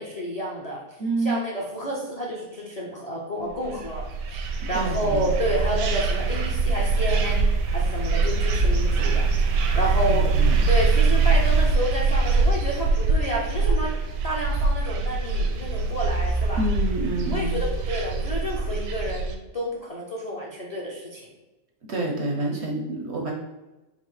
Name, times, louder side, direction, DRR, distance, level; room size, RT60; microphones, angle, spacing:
voice 1, 0.0-0.8 1.2-4.0 4.3-9.2 9.7-10.3 10.7-14.0 14.2-16.6 17.3-21.3, equal, 45° left, -3 dB, 0.4 m, -30 dB
voice 2, 1.0-1.4 4.7-5.3 10.1-10.6 16.6-17.6 21.9-23.3, right 2 dB, 60° right, 0 dB, 0.7 m, -28 dB
sound 1, 3.6-19.3, right 4 dB, 80° right, 1.2 m, -23 dB
5.4 x 2.1 x 4.8 m, 1.1 s
omnidirectional pair, 1.9 m